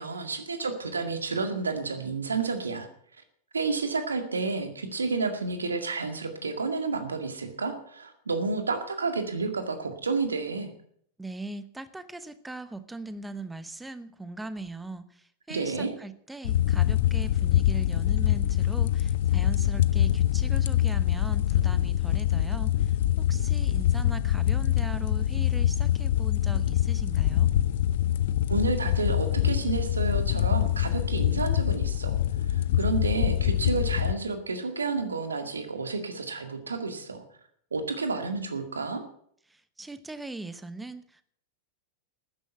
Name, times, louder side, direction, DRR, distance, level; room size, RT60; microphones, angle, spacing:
voice 1, 0.0-2.9 3.5-10.7 15.5-15.9 28.5-37.2 37.7-39.0, right 4 dB, 75° right, 8 dB, 2.0 m, -30 dB
voice 2, 11.2-27.5 39.5-41.2, right 2 dB, 5° right, 14 dB, 1.1 m, -40 dB
sound 1, 16.4-34.1, left 12 dB, 55° left, 0.6 m, -25 dB
13.0 x 10.0 x 7.9 m, 0.65 s
figure-of-eight pair, 90°, 0 cm